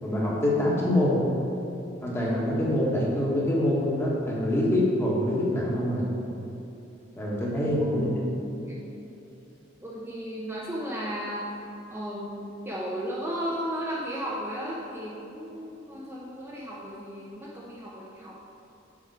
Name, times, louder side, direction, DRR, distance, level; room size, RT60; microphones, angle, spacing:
voice 1, 0.0-1.2 2.0-6.1 7.2-8.1, left 1 dB, 15° left, -5 dB, 1.5 m, -25 dB
voice 2, 7.8-8.8 9.8-11.5 11.9-18.4, equal, 10° right, -7 dB, 0.7 m, -35 dB
7.3 x 5.5 x 4.7 m, 3.0 s
head